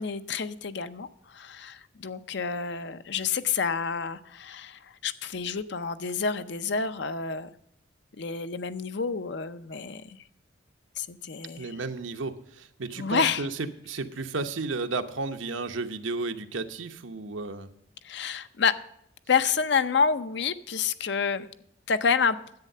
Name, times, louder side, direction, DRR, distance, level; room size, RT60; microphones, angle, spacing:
voice 1, 0.0-7.5 8.2-10.2 11.0-11.7 13.0-13.4 18.0-18.8 19.3-21.5 21.9-22.4, left 5 dB, 60° left, 12 dB, 0.6 m, -28 dB
voice 2, 11.6-17.7, right 3 dB, 80° right, 8 dB, 0.9 m, -33 dB
10.5 x 8.4 x 6.6 m, 0.72 s
head